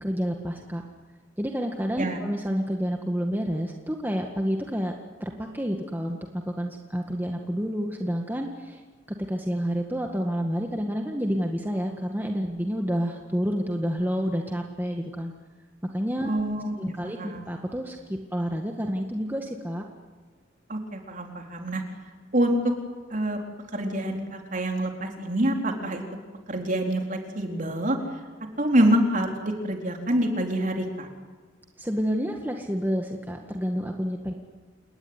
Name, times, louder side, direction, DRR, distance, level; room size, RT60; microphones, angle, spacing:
voice 1, 0.0-0.8 1.4-4.9 5.2-8.8 9.3-15.3 15.9-16.3 16.8-19.9 31.8-34.3, equal, 10° right, 2 dB, 1.8 m, -29 dB
voice 2, 16.2-16.8 17.0-17.4 20.7-21.8 22.3-22.7 23.1-23.4 23.7-26.0 26.5-28.0 28.6-31.1, right 1 dB, 45° right, 3 dB, 4.2 m, -26 dB
28.5 x 20.0 x 9.8 m, 1.4 s
head